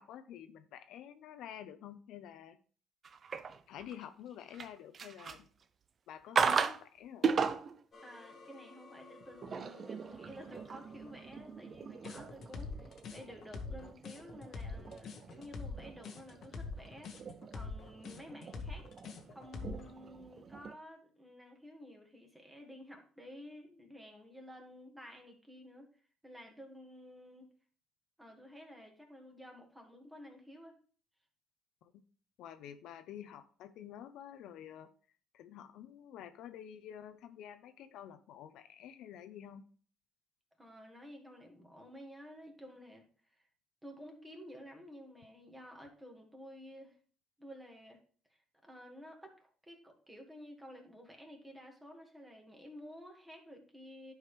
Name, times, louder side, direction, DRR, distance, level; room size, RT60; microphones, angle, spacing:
voice 1, 0.0-2.6 3.7-5.5 6.1-7.3 31.8-32.0 32.4-34.9 35.3-39.7, left 10 dB, 75° left, 10 dB, 0.7 m, -49 dB
sound 1, 3.0-4.0 4.4-5.6 6.3-6.8 7.2-7.8 9.2-20.7, right 6 dB, 40° right, 0.5 m, -38 dB
sound 2, 7.9-12.9, left 3 dB, 40° left, 2.0 m, -59 dB
voice 2, 8.0-17.1 17.5-18.9 19.3-25.9 26.2-27.5 28.2-30.8 40.6-43.0 43.3-43.5 43.8-47.0 47.4-48.0 48.3-54.1, equal, 10° right, 2 dB, 1.9 m, -52 dB
sound 3, 12.0-19.9, left 4 dB, 55° left, 1.2 m, -44 dB
10.5 x 4.8 x 3.3 m, 0.42 s
cardioid pair, 115°, 0 cm